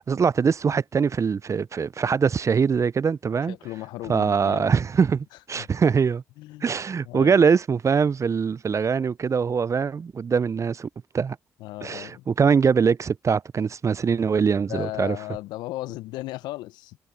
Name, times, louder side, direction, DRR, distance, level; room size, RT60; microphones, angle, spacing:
voice 1, 0.0-3.6 4.1-6.2 6.6-10.9 11.1-11.4 11.8-15.2, right 6 dB, 45° right, 0.6 m, -22 dB
voice 2, 3.5-4.7 5.5-5.7 6.4-6.8 7.0-7.4 11.6-12.3 14.7-17.0, left 17 dB, 75° left, 0.9 m, -36 dB
hypercardioid pair, 40°, 7 cm